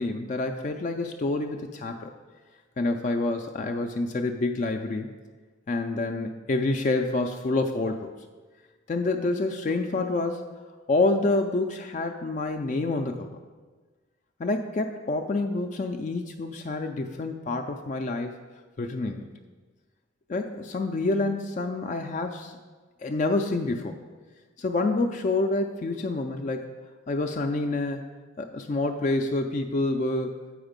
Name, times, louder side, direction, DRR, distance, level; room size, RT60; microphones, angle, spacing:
voice 1, 0.0-2.1 2.8-5.1 5.7-8.1 8.9-10.5 10.9-13.4 14.4-18.4 18.8-19.3 20.3-22.5 23.0-24.0 24.6-26.7 27.1-28.0 28.4-30.4, left 2 dB, 35° left, 4 dB, 0.3 m, -27 dB
7.9 x 4.8 x 5.1 m, 1.4 s
head